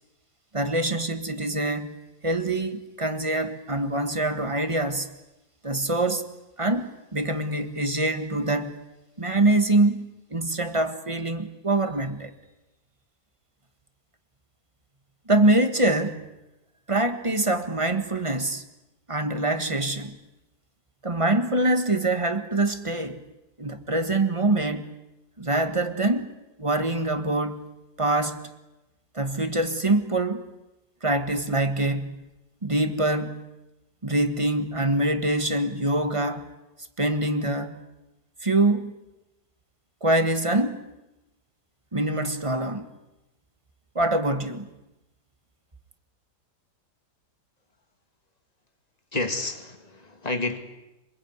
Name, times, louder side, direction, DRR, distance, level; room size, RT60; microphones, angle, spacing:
voice 1, 0.5-2.0 2.2-5.1 5.6-6.2 6.6-8.8 9.2-12.3 15.3-16.2 16.9-18.6 19.1-20.2 21.0-23.2 23.6-24.9 25.4-26.3 26.6-27.6 28.0-28.4 29.1-30.4 31.0-32.3 32.6-33.5 34.0-36.5 37.0-37.8 38.4-38.9 40.0-40.8 41.9-42.9 43.9-44.7, right 2 dB, 20° right, 9 dB, 1.6 m, -24 dB
voice 2, 49.1-50.6, left 2 dB, 25° left, 6 dB, 2.4 m, -29 dB
27.5 x 21.5 x 9.7 m, 0.96 s
omnidirectional pair, 1.8 m